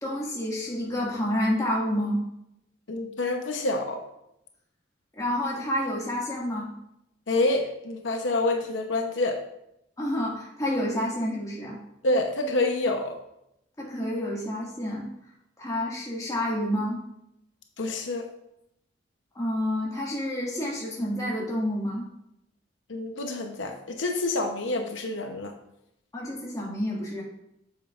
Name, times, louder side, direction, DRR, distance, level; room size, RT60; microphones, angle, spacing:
voice 1, 0.0-2.2 5.2-6.7 10.0-11.8 13.8-15.1 15.6-17.0 19.4-22.0 26.1-27.2, left 1 dB, 20° left, -4 dB, 1.8 m, -29 dB
voice 2, 2.9-4.0 7.3-9.4 12.0-13.2 17.8-18.3 22.9-25.5, left 2 dB, 85° left, 4 dB, 0.8 m, -27 dB
8.4 x 7.2 x 2.4 m, 0.81 s
head